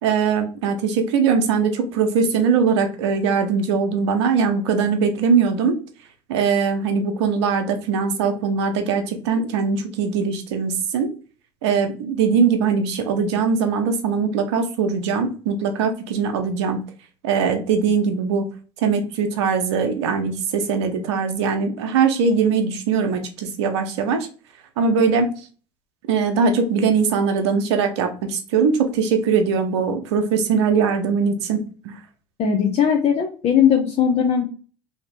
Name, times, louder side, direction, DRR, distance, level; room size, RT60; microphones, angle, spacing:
voice 1, 0.0-5.8 6.3-11.1 11.6-16.8 17.2-18.5 18.8-24.3 24.8-25.3 26.1-32.0, right 5 dB, 80° right, 6 dB, 0.7 m, -21 dB
voice 2, 32.4-34.4, left 8 dB, 50° left, 3 dB, 0.6 m, -18 dB
2.8 x 2.8 x 3.3 m, 0.38 s
hypercardioid pair, 75°, 14 cm